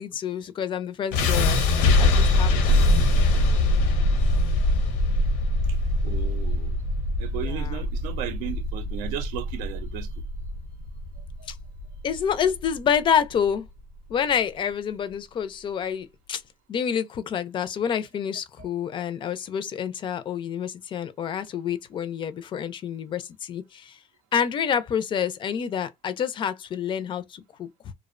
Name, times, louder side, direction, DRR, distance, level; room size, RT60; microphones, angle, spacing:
voice 1, 0.0-2.9 7.4-7.8 11.5-11.6 12.0-13.7 14.1-16.4 16.7-24.0 24.3-27.9, left 8 dB, 40° left, 0.4 m, -28 dB
sound 1, 1.1-13.2, left 2 dB, 85° left, 0.6 m, -23 dB
voice 2, 6.0-6.8 7.2-10.1 11.4-11.5, right 11 dB, 80° right, 0.5 m, -35 dB
2.5 x 2.0 x 2.4 m
cardioid pair, 115°, 13 cm